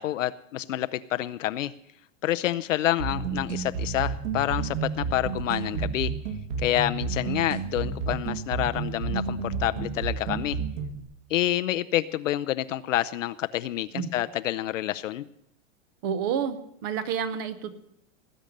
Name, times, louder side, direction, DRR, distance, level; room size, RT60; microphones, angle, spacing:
voice 1, 0.0-1.7 2.2-6.1 6.6-10.6 11.3-15.2, left 13 dB, 70° left, 11 dB, 0.7 m, -28 dB
sound 1, 3.0-11.0, right 5 dB, 65° right, 2.2 m, -31 dB
voice 2, 16.0-17.7, right 7 dB, 20° right, 13 dB, 0.5 m, -30 dB
19.0 x 8.8 x 6.6 m, 0.76 s
supercardioid pair, 170°, 40 cm